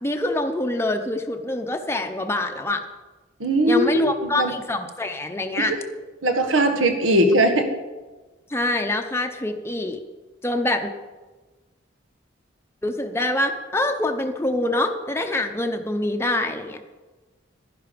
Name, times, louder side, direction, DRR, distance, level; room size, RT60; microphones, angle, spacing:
voice 1, 0.0-2.8 3.6-5.7 8.5-10.0 10.4-10.9 12.8-16.8, left 1 dB, 15° left, 4 dB, 0.7 m, -25 dB
voice 2, 3.4-4.5 5.6-5.8 6.2-7.7, right 1 dB, 85° right, 6 dB, 1.6 m, -20 dB
11.5 x 11.0 x 5.2 m, 1.2 s
head